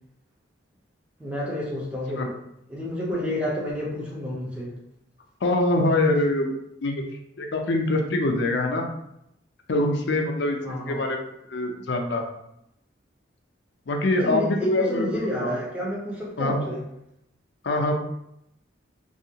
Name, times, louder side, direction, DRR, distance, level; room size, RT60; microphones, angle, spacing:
voice 1, 1.2-2.3 2.7-4.7 10.6-11.0 14.2-16.8, equal, 5° right, -6 dB, 0.6 m, -30 dB
voice 2, 5.4-6.5 6.8-7.0 7.4-8.8 9.7-12.2 13.9-15.6 16.4-16.6 17.6-17.9, left 2 dB, 65° left, 3 dB, 0.4 m, -24 dB
2.6 x 2.4 x 2.8 m, 0.80 s
head